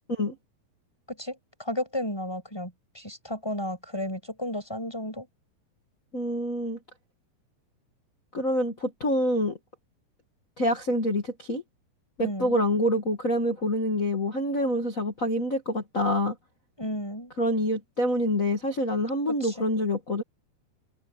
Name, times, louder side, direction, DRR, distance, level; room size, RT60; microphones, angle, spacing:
voice 1, 1.1-5.3 12.2-12.6 16.8-17.3 19.3-19.7, left 1 dB, 5° left, 7.8 m, -33 dB
voice 2, 6.1-6.8 8.3-9.6 10.6-11.6 12.2-16.3 17.4-20.2, left 1 dB, 50° left, 0.9 m, -26 dB
omnidirectional pair, 5.2 m